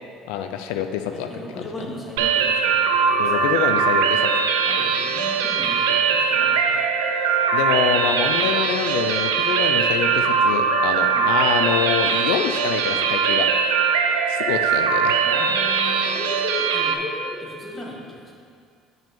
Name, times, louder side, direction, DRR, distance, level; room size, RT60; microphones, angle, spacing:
voice 1, 0.3-1.3 3.2-4.3 7.5-13.5 14.3-15.2, left 9 dB, 80° left, 7 dB, 0.4 m, -26 dB
voice 2, 1.1-3.2 4.7-6.9 11.1-11.3 15.2-18.3, left 1 dB, 25° left, -3 dB, 1.9 m, -36 dB
sound 1, 2.2-16.9, right 6 dB, 90° right, 0.6 m, -21 dB
6.0 x 5.4 x 6.9 m, 2.2 s
supercardioid pair, 80°, 0 cm